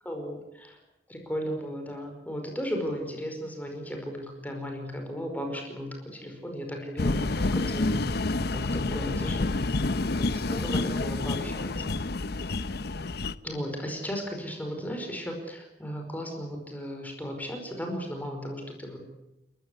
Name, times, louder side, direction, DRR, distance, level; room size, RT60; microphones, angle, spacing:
voice 1, 0.0-0.7 1.1-8.3 8.5-9.8 10.1-11.7 13.4-19.0, equal, 10° left, 3 dB, 5.1 m, -35 dB
sound 1, 7.0-13.4, left 2 dB, 65° left, 0.9 m, -28 dB
30.0 x 15.5 x 9.9 m, 0.95 s
head